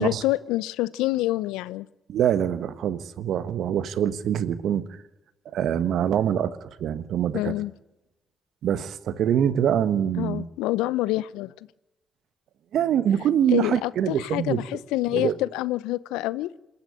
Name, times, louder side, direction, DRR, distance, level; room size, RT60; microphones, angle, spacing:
voice 1, 0.0-1.9 7.3-7.7 10.2-11.5 13.5-16.5, left 17 dB, 80° left, 20 dB, 0.6 m, -27 dB
voice 2, 2.1-4.8 5.5-7.5 8.6-10.4 12.7-14.6 15.1-15.3, right 9 dB, 70° right, 15 dB, 1.3 m, -24 dB
27.0 x 10.5 x 10.0 m, 0.97 s
hypercardioid pair, 45°, 0 cm